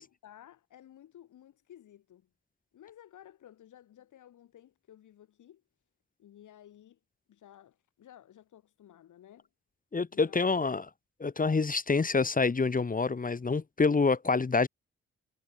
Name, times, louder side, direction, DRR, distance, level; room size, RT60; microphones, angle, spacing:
voice 1, 0.0-2.3 2.7-5.6 6.2-7.0 7.3-9.5 10.1-10.6, left 11 dB, 90° left, 4.2 m, -55 dB
voice 2, 9.9-10.9 11.2-14.7, left 4 dB, 30° left, 0.9 m, -27 dB
cardioid pair, 55°, 30 cm